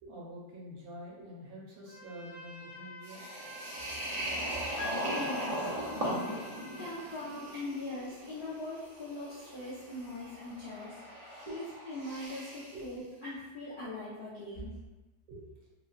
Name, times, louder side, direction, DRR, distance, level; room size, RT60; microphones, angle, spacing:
voice 1, 0.0-3.3 11.5-11.6 12.7-12.8 15.3-15.5, right 1 dB, 65° right, -5 dB, 1.1 m, -46 dB
Trumpet, 1.9-7.3, left 1 dB, 90° left, 1.3 m, -50 dB
sound 1, 3.0-12.8, equal, 85° right, 0.3 m, -39 dB
Piano, 4.8-6.5, left 1 dB, 70° left, 0.9 m, -45 dB
voice 2, 5.1-5.7 6.0-6.2 6.7-14.7, left 1 dB, 55° left, -10 dB, 0.5 m, -41 dB
3.8 x 2.0 x 2.5 m, 1.1 s
omnidirectional pair, 1.8 m